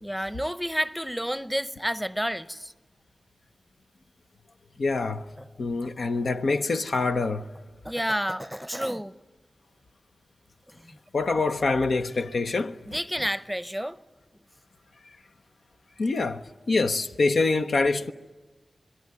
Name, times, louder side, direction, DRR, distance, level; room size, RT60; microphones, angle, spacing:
voice 1, 0.0-2.7 5.4-5.5 7.8-9.1 12.9-14.0, equal, ahead, 0.8 m, -30 dB
voice 2, 4.8-5.3 5.6-7.5 11.1-12.8 16.0-18.1, left 3 dB, 75° left, 0.8 m, -25 dB
26.5 x 21.0 x 9.6 m
cardioid pair, 50°, 0 cm